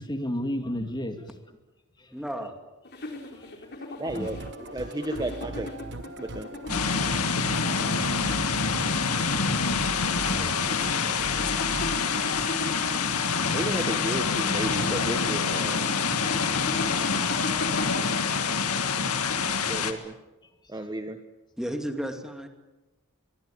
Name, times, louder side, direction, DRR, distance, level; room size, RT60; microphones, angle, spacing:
voice 1, 0.0-1.3 2.0-2.1 3.0-4.3 9.3-9.5 10.3-10.5 13.3-13.4 17.4-17.6 19.4-19.5, equal, 20° left, 6 dB, 2.4 m, -35 dB
voice 2, 2.1-2.5 10.3-10.5 21.6-22.5, equal, 5° right, 5 dB, 2.6 m, -33 dB
sound 1, 2.8-19.7, left 2 dB, 50° left, 3.8 m, -38 dB
voice 3, 4.0-4.4 4.7-5.7 6.2-6.5 13.5-15.9 19.7-20.2 20.7-21.2, right 1 dB, 20° right, 7 dB, 1.3 m, -33 dB
Musical instrument, 4.1-12.5, right 2 dB, 55° right, 1.2 m, -40 dB
sound 2, 6.7-19.9, left 5 dB, 90° left, 2.1 m, -26 dB
24.0 x 22.5 x 8.7 m, 1.1 s
head